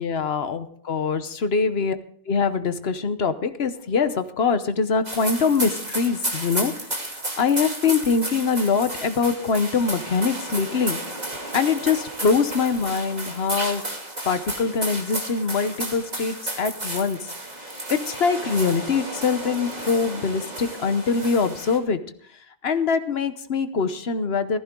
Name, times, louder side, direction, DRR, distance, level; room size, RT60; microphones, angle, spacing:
voice 1, 0.0-1.9 2.3-6.7 7.4-11.0 11.3-13.8 14.2-17.2 17.9-22.0 22.6-24.6, left 5 dB, 65° left, 11 dB, 1.2 m, -23 dB
sound 1, 5.0-21.8, right 1 dB, 35° right, 2.7 m, -33 dB
15.5 x 14.5 x 3.8 m, 0.62 s
omnidirectional pair, 1.2 m